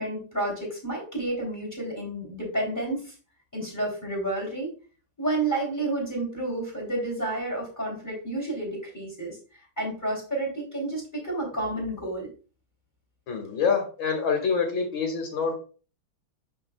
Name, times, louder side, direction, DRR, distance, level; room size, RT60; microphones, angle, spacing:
voice 1, 0.0-3.1 3.5-4.7 5.2-9.4 9.8-12.3, right 2 dB, 10° left, -1 dB, 3.1 m, -30 dB
voice 2, 13.3-15.5, left 5 dB, 70° left, 2 dB, 2.5 m, -26 dB
11.5 x 4.0 x 2.3 m, 0.38 s
omnidirectional pair, 2.2 m